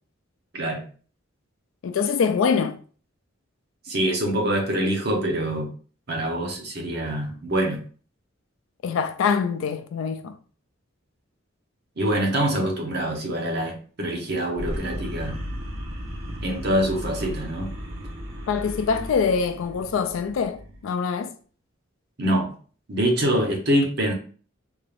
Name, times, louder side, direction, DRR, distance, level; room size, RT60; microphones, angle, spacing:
voice 1, 1.8-2.8 8.8-10.4 18.5-21.3, left 6 dB, 75° left, 0.3 m, -24 dB
voice 2, 3.9-5.7 6.1-7.8 12.0-15.4 16.4-17.7 22.2-22.5 22.9-24.1, right 1 dB, 55° right, 0.9 m, -25 dB
sound 1, 14.5-20.8, equal, 75° right, 1.0 m, -35 dB
3.5 x 3.3 x 2.5 m
head